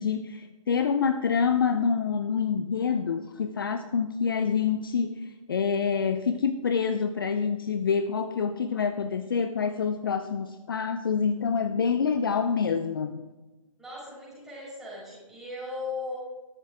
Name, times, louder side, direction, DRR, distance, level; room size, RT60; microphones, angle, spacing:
voice 1, 0.0-13.2, left 6 dB, 40° left, 9 dB, 0.6 m, -27 dB
voice 2, 13.8-16.2, left 3 dB, ahead, -7 dB, 5.0 m, -37 dB
13.5 x 12.5 x 3.7 m, 1.1 s
figure-of-eight pair, 150°, 18 cm